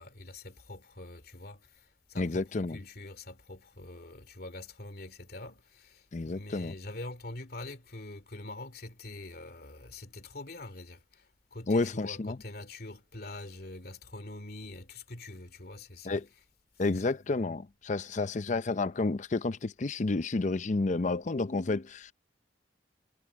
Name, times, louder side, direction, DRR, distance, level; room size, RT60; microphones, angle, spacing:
voice 1, 0.0-16.2, left 2 dB, 60° left, 2.6 m, -45 dB
voice 2, 2.2-2.8 6.1-6.7 11.7-12.4 16.0-16.3 16.8-22.1, left 3 dB, 45° left, 0.6 m, -30 dB
head